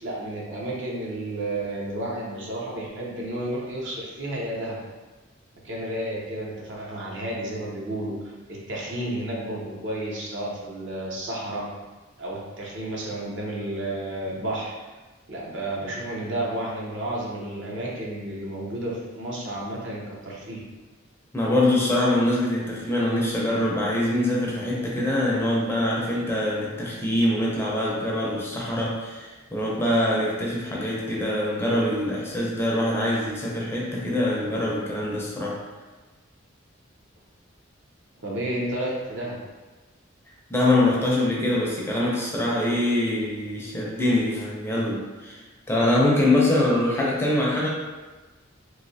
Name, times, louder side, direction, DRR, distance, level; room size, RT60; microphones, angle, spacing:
voice 1, 0.0-4.8 5.6-8.2 8.5-11.7 12.2-14.7 15.3-20.6 38.2-39.4, right 1 dB, 65° right, -4 dB, 0.7 m, -31 dB
voice 2, 21.3-35.6 40.5-45.4 45.7-47.7, left 1 dB, 10° left, -4 dB, 0.5 m, -24 dB
3.1 x 2.7 x 2.7 m, 1.2 s
head